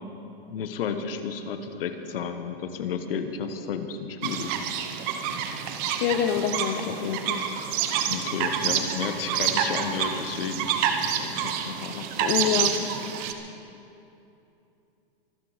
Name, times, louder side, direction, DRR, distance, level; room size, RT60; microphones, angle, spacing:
voice 1, 0.5-4.5 8.0-10.7 11.2-12.5, left 6 dB, 70° left, 8 dB, 1.4 m, -32 dB
sound 1, 4.2-13.3, right 8 dB, 30° right, 0.9 m, -28 dB
voice 2, 6.0-7.4 12.2-12.8, left 9 dB, 30° left, 9 dB, 0.8 m, -26 dB
24.5 x 9.1 x 5.1 m, 2.8 s
supercardioid pair, 160°, 29 cm